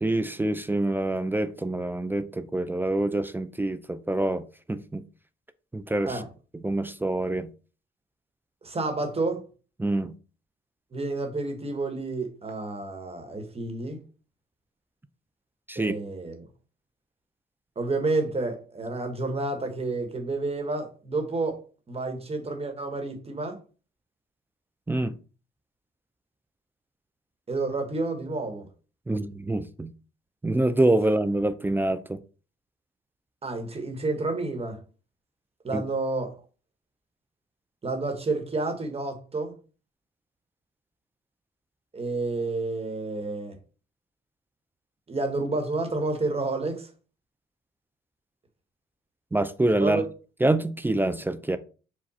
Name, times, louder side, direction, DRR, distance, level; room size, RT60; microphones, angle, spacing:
voice 1, 0.0-4.4 4.7-5.0 5.7-6.2 6.6-7.5 9.8-10.1 15.7-16.0 24.9-25.1 29.1-29.9 30.4-32.2 35.7-35.8 49.3-50.0 50.4-51.6, right 1 dB, 10° right, 0.3 m, -26 dB
voice 2, 8.6-9.4 10.9-14.0 15.7-16.5 17.7-21.6 21.9-23.6 27.5-28.7 33.4-34.8 35.6-36.3 37.8-39.5 41.9-43.6 45.1-46.9 49.8-50.0, right 3 dB, 30° right, 1.2 m, -30 dB
4.6 x 2.3 x 4.2 m
cardioid pair, 90°, 20 cm